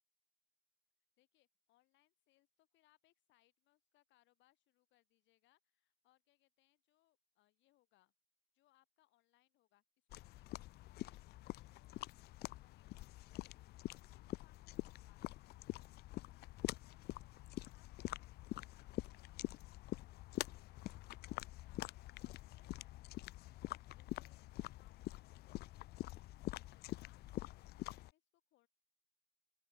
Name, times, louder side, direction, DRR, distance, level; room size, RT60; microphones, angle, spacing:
voice 1, 1.2-8.1 8.5-23.7 23.9-28.7, left 16 dB, 75° left, 6.1 m, -77 dB
sound 1, 10.1-28.1, left 17 dB, 60° left, 0.4 m, -46 dB
open air
cardioid pair, 165°, 19 cm